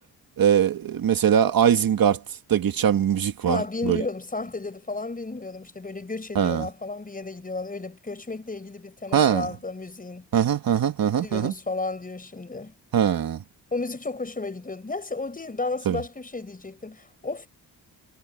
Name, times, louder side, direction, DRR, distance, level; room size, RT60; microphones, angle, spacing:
voice 1, 0.4-2.2 2.5-4.0 6.4-6.7 9.1-9.5 10.3-11.5 12.9-13.4 15.9-16.0, right 9 dB, 60° right, 1.7 m, -21 dB
voice 2, 3.4-10.3 11.2-12.7 13.7-17.5, left 3 dB, 20° left, 6.4 m, -33 dB
cardioid pair, 110°, 40 cm